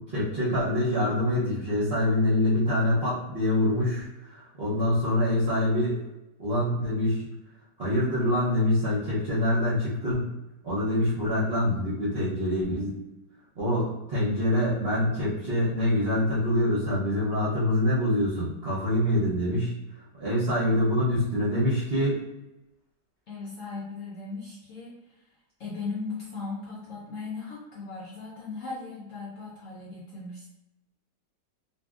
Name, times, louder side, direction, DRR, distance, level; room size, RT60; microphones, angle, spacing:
voice 1, 0.0-6.0 6.4-7.3 7.8-10.3 10.6-13.0 13.6-19.7 20.2-22.2, left 1 dB, 50° right, -9 dB, 0.7 m, -25 dB
voice 2, 23.3-25.2 25.6-30.5, left 4 dB, 65° left, -5 dB, 0.8 m, -37 dB
2.6 x 2.6 x 2.3 m, 0.96 s
omnidirectional pair, 1.9 m